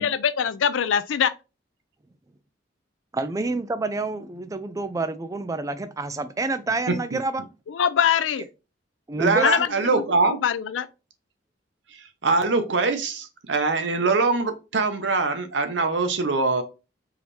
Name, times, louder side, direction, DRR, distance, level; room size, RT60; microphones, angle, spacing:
voice 1, 0.0-1.3 7.7-8.5 9.4-10.9, left 8 dB, 80° left, 0.4 m, -23 dB
voice 2, 3.1-7.5 9.1-9.5 9.8-10.0, right 3 dB, 15° right, 0.3 m, -28 dB
voice 3, 6.9-7.2 9.2-10.4 11.9-16.6, right 3 dB, 65° right, 0.7 m, -23 dB
4.8 x 2.7 x 3.1 m
head